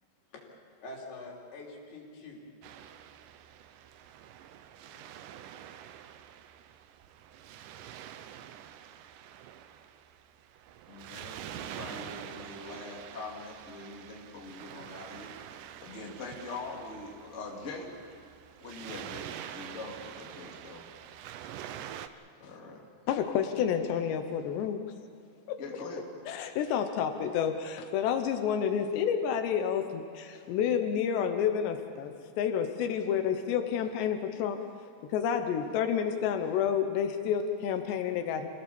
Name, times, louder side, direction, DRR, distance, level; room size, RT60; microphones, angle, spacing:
voice 1, 0.8-2.4 4.8-5.1 7.6-8.1, left 2 dB, 70° left, -2 dB, 5.0 m, -46 dB
Waves surf, 2.6-22.1, right 10 dB, 85° right, 1.8 m, -46 dB
voice 2, 10.9-15.3 15.8-17.9 18.6-20.8 22.4-22.8 25.6-26.0, left 3 dB, 20° left, -2 dB, 2.3 m, -43 dB
voice 3, 23.1-24.8 25.5-25.6 26.3-34.6 35.1-38.5, left 8 dB, 85° left, 6 dB, 3.2 m, -29 dB
27.5 x 17.0 x 7.1 m, 2.4 s
omnidirectional pair, 4.9 m